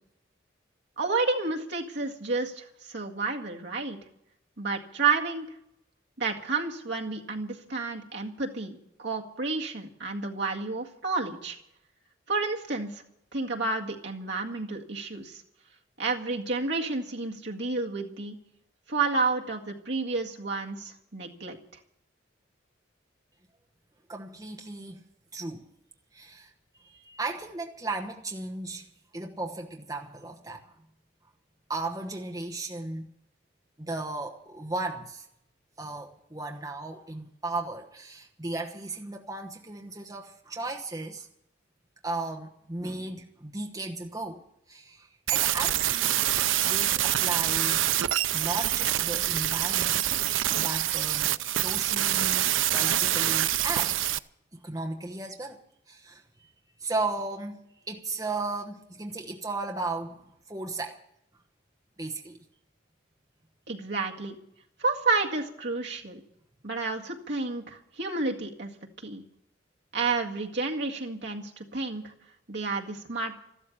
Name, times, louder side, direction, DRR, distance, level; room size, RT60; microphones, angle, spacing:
voice 1, 1.0-4.0 4.6-5.5 6.2-11.6 12.3-13.0 13.3-15.4 16.0-18.4 18.9-21.6 63.7-64.4 64.8-66.2 66.6-68.7 69.0-69.2 69.9-72.1 72.5-73.4, right 3 dB, 60° right, 1.9 m, -30 dB
voice 2, 24.1-25.0 25.3-25.7 26.1-26.5 26.8-30.7 31.7-33.1 33.8-35.3 35.8-41.3 42.0-44.4 44.7-46.3 46.6-47.9 48.3-50.1 50.5-54.0 54.5-55.6 55.9-56.2 56.8-57.6 57.8-61.0 62.0-62.4, right 2 dB, 20° right, 1.1 m, -35 dB
sound 1, 45.3-54.2, right 13 dB, 85° right, 0.5 m, -26 dB
14.0 x 12.5 x 7.3 m
head